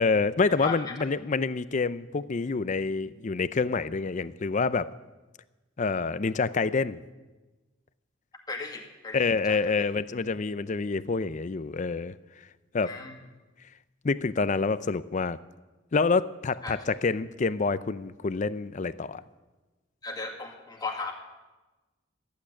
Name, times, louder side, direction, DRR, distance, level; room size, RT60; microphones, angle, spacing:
voice 1, 0.0-4.9 5.8-7.0 9.1-12.1 12.7-13.0 14.0-15.4 15.9-19.2, left 4 dB, 40° left, 16 dB, 0.5 m, -27 dB
voice 2, 8.5-9.2 9.5-9.7 12.9-13.2 16.6-16.8 20.0-21.1, left 3 dB, 20° left, 0 dB, 2.1 m, -36 dB
14.5 x 8.6 x 9.9 m, 1.2 s
head